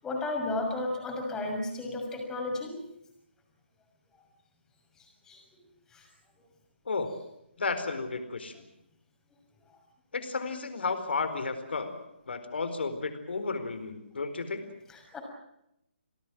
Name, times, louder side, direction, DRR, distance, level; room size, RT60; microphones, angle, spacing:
voice 1, 0.0-2.8 5.0-5.6 5.9-6.1 14.9-15.2, left 2 dB, 10° left, 1 dB, 6.3 m, -34 dB
voice 2, 7.6-8.6 10.1-11.9 12.3-14.6, left 4 dB, 65° left, 9 dB, 4.4 m, -33 dB
27.5 x 18.0 x 7.7 m, 0.82 s
figure-of-eight pair, 145°, 6 cm